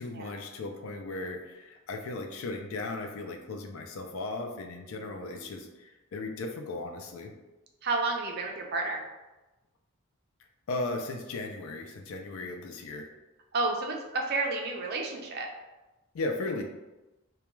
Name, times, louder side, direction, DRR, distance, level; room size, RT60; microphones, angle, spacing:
voice 1, 0.0-7.3 10.7-13.1 16.1-16.7, left 2 dB, 75° left, 4 dB, 0.4 m, -36 dB
voice 2, 4.9-5.7 7.8-9.0 13.5-15.5, right 3 dB, 45° right, 1 dB, 0.4 m, -31 dB
2.2 x 2.2 x 3.0 m, 1.1 s
head